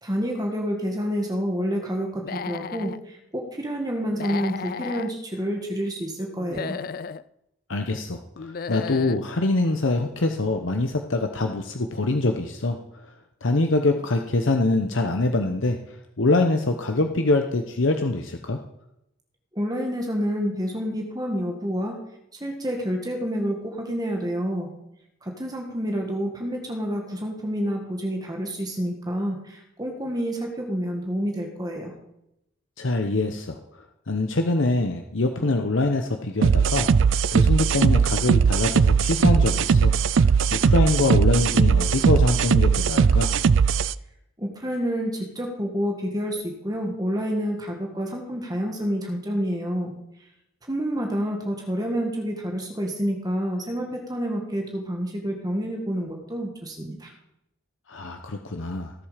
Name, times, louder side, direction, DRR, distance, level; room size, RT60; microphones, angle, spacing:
voice 1, 0.0-6.8 19.5-22.0 22.4-24.7 25.2-31.9 44.4-49.9 50.7-57.1, equal, 20° right, 1 dB, 1.8 m, -28 dB
Human voice / Animal, 2.1-3.0 4.1-5.1 6.4-7.2 8.4-9.2, left 6 dB, 45° left, 0.4 m, -34 dB
voice 2, 7.7-8.2 8.7-12.8 13.4-15.8 16.2-18.6 32.8-33.6 34.1-36.9 37.3-43.3 57.9-58.9, left 2 dB, 70° left, 4 dB, 0.9 m, -24 dB
sound 1, 36.4-43.9, right 6 dB, 70° right, 0.4 m, -19 dB
17.5 x 7.4 x 5.1 m, 0.82 s
head